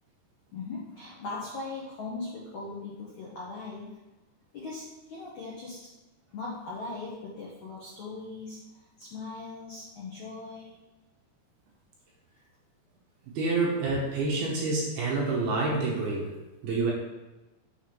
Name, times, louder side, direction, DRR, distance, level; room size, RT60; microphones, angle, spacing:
voice 1, 0.5-4.0 4.5-5.9 6.3-10.7, left 3 dB, 75° left, -6 dB, 1.7 m, -39 dB
voice 2, 13.4-16.3 16.6-16.9, right 3 dB, 70° right, -4 dB, 2.6 m, -27 dB
7.1 x 3.5 x 5.9 m, 1.1 s
omnidirectional pair, 5.3 m